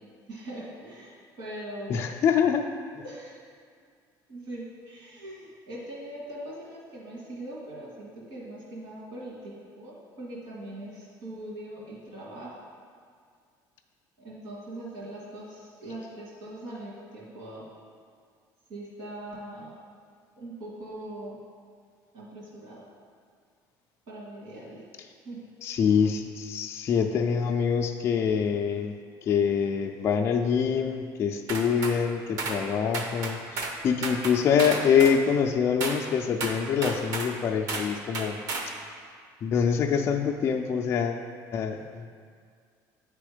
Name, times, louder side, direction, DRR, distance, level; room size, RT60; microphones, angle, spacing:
voice 1, 0.3-1.1 1.4-2.1 3.0-3.3 4.3-12.5 14.2-17.7 18.7-19.7 20.4-21.4 22.1-22.8 24.1-24.8 25.3-25.5, right 1 dB, 65° right, -6 dB, 1.9 m, -41 dB
voice 2, 1.9-2.7 2.9-3.0 25.6-28.9 29.2-38.4 39.4-41.2 41.5-42.0, left 7 dB, 35° left, 3 dB, 0.3 m, -25 dB
sound 1, 31.5-32.0 32.4-32.6 32.9-33.8 34.0-35.2 35.8-36.0 36.4-37.3 37.7-37.9 38.1-38.7, right 3 dB, 50° right, 0.8 m, -32 dB
9.0 x 3.4 x 5.0 m, 2.1 s
cardioid pair, 160°, 8 cm